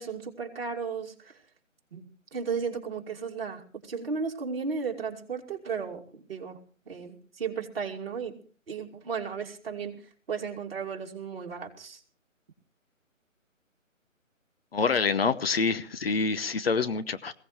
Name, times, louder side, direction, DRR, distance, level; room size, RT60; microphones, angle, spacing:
voice 1, 0.0-1.3 1.9-2.1 2.3-6.0 6.3-6.6 6.9-8.3 8.7-10.0 10.3-12.0, right 5 dB, 45° right, 1 dB, 2.6 m, -34 dB
voice 2, 14.7-17.3, left 4 dB, 45° left, 11 dB, 1.0 m, -26 dB
21.5 x 16.5 x 3.2 m, 0.41 s
figure-of-eight pair, 155°, 41 cm